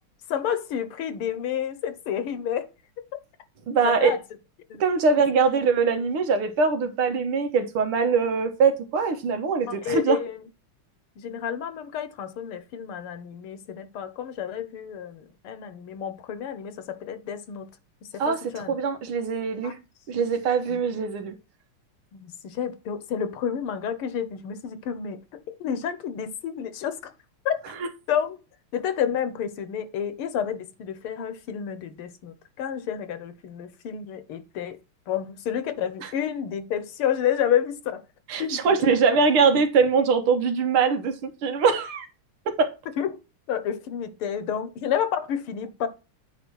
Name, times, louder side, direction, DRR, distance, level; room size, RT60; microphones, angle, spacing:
voice 1, 0.3-2.7 3.8-4.2 4.7-4.8 9.7-10.4 11.2-17.7 18.1-18.7 19.6-19.7 20.7-20.9 22.1-25.2 25.5-27.1 27.5-27.6 28.1-28.4 28.7-34.8 35.1-38.0 38.4-38.9 43.0-43.2 43.5-45.9, left 8 dB, 80° left, 1.9 m, -30 dB
voice 2, 3.7-4.1 4.8-10.2 18.2-19.8 20.1-21.4 36.0-36.1 38.3-42.1 42.5-42.7, right 5 dB, 75° right, 2.1 m, -22 dB
9.2 x 3.3 x 6.2 m
omnidirectional pair, 2.4 m